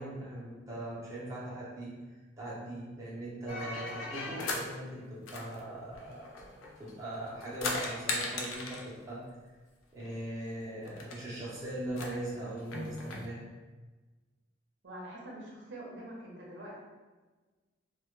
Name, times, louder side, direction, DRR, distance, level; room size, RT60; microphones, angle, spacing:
voice 1, 0.0-6.5 6.8-9.2 9.9-13.4, right 1 dB, 15° right, -7 dB, 0.6 m, -40 dB
sound 1, 3.5-4.7 5.3-6.9 7.3-8.9 10.1-10.2 10.4-10.5 10.9-11.2 11.9-13.3, left 3 dB, 85° left, 0.4 m, -38 dB
voice 2, 14.8-16.8, right 1 dB, 60° right, -4 dB, 0.6 m, -45 dB
2.1 x 2.1 x 2.9 m, 1.3 s
head